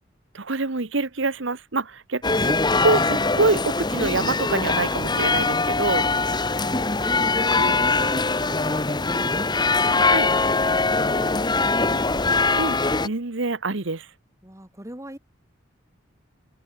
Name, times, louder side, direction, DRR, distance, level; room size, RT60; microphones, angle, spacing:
voice 1, 0.3-2.6 2.8-6.1 7.6-7.7 10.1-10.3 12.5-14.1, right 3 dB, 65° right, 1.3 m, -26 dB
sound 1, 2.2-13.1, left 3 dB, 20° left, 1.5 m, -22 dB
voice 2, 6.5-12.0 14.4-15.2, right 1 dB, 15° right, 3.5 m, -41 dB
head